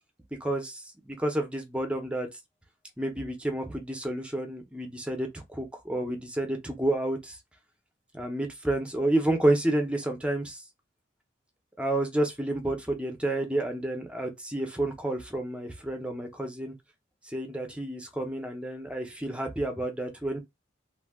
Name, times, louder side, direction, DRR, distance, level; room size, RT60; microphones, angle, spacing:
voice 1, 0.4-2.3 3.0-7.4 8.1-10.6 11.8-16.7 17.3-20.4, right 1 dB, 5° right, 0.6 m, -30 dB
2.5 x 2.2 x 3.5 m
head